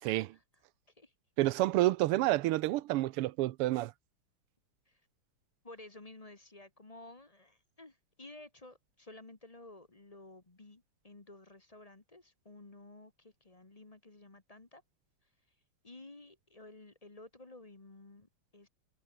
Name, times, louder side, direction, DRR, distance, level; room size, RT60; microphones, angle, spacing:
voice 1, 0.0-0.4 1.0-1.1 4.9-5.0 5.6-14.8 15.8-18.7, left 2 dB, 20° left, 1.2 m, -53 dB
voice 2, 1.4-3.9, right 16 dB, 90° right, 1.6 m, -29 dB
omnidirectional pair, 2.4 m